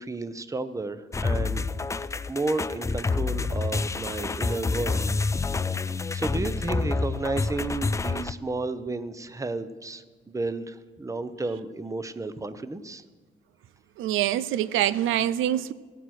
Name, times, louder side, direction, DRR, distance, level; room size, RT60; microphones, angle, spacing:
voice 1, 0.0-1.6 2.3-5.0 5.8-13.0, right 3 dB, 15° right, 12 dB, 0.7 m, -32 dB
sound 1, 1.1-8.3, left 3 dB, 15° left, 0.3 m, -28 dB
voice 2, 14.0-15.7, right 12 dB, 85° right, 15 dB, 0.5 m, -25 dB
15.5 x 8.5 x 6.4 m, 1.4 s
cardioid pair, 90°, 20 cm